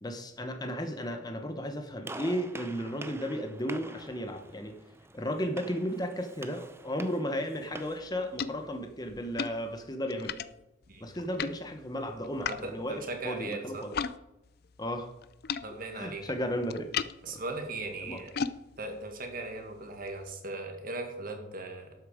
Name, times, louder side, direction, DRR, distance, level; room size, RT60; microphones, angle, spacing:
voice 1, 0.0-4.7 5.1-10.3 11.0-13.9 14.8-15.1 15.9-16.9 17.3-17.4 18.1-18.2, equal, 20° left, 6 dB, 0.9 m, -34 dB
Gunshot gunfire, 2.0-8.1, right 2 dB, 10° right, 0.6 m, -46 dB
sound 1, 7.7-14.2 14.4-20.3, left 6 dB, 50° left, 0.4 m, -40 dB
voice 2, 12.4-13.9 15.6-16.2 17.2-18.3 18.8-21.9, right 2 dB, 45° right, 4 dB, 2.0 m, -38 dB
12.0 x 8.6 x 4.9 m, 0.95 s
head